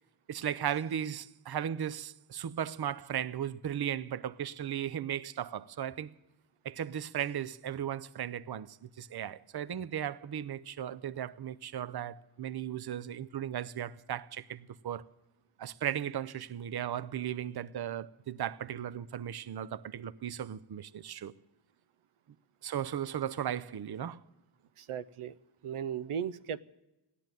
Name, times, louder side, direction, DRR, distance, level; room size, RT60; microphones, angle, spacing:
voice 1, 0.3-6.1 6.6-15.0 15.6-21.3 22.6-24.2, right 10 dB, 50° right, 0.6 m, -36 dB
voice 2, 24.8-25.3 25.6-26.6, right 8 dB, 90° right, 0.6 m, -36 dB
15.0 x 10.0 x 9.1 m
cardioid pair, 60°, 50 cm